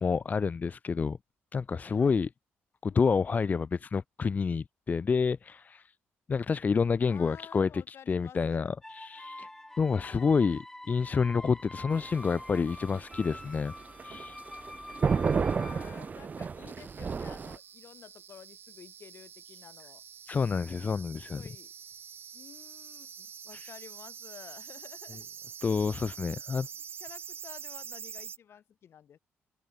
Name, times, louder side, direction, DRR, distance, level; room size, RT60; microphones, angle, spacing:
voice 1, 0.0-1.2 1.5-2.3 2.8-5.9 6.3-9.5 9.8-10.6 10.9-13.7 14.0-14.4 20.3-21.4 23.5-23.7 25.6-26.7, left 5 dB, 35° left, 0.6 m, -28 dB
voice 2, 1.9-2.2 2.8-3.7 7.1-8.7 10.0-10.5 15.2-20.0 21.1-21.7 22.3-25.3 25.6-25.8 26.5-26.7 27.0-29.2, left 9 dB, 60° left, 3.8 m, -52 dB
sound 1, 8.8-16.8, left 1 dB, 10° left, 4.3 m, -46 dB
sound 2, 11.9-17.6, right 5 dB, 35° right, 0.6 m, -32 dB
sound 3, 16.7-28.4, right 7 dB, 55° right, 1.9 m, -46 dB
cardioid pair, 95°, 5 cm